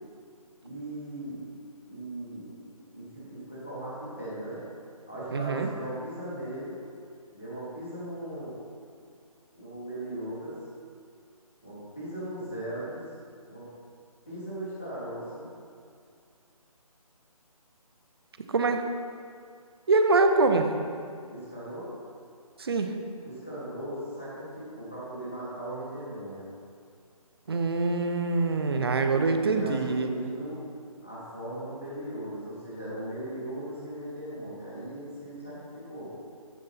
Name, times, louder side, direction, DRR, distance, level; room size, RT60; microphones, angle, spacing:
voice 1, 0.6-1.4 1.9-4.6 5.1-6.8 7.3-8.6 9.5-10.5 11.6-13.0 13.5-13.6 14.3-15.5 21.3-21.9 23.2-26.5 29.5-30.6 31.0-36.1, right 1 dB, 5° left, -14 dB, 0.3 m, -38 dB
voice 2, 5.3-5.7 18.5-18.8 19.9-20.7 22.6-22.9 27.5-30.1, right 3 dB, 40° right, 6 dB, 0.6 m, -24 dB
11.0 x 3.8 x 5.7 m, 2.3 s
figure-of-eight pair, 165°, 19 cm